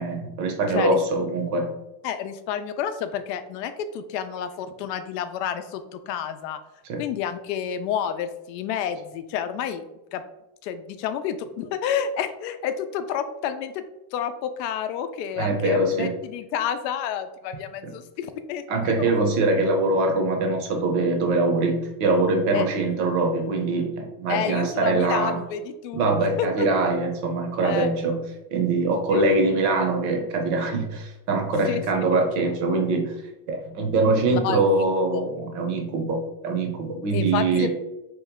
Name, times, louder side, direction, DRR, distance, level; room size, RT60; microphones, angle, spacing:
voice 1, 0.0-1.7 6.9-7.0 15.4-16.1 17.8-17.9 18.7-25.4 25.9-33.2 33.5-37.7, right 2 dB, 40° right, 4 dB, 0.6 m, -23 dB
voice 2, 2.0-6.6 7.0-9.8 10.1-10.2 10.6-13.8 14.1-19.1 22.5-22.7 24.3-26.7 27.6-27.9 29.1-29.4 31.7-31.8 34.3-35.3 37.1-37.7, left 8 dB, 90° left, 10 dB, 0.6 m, -30 dB
3.2 x 3.0 x 3.5 m, 0.93 s
cardioid pair, 170°, 48 cm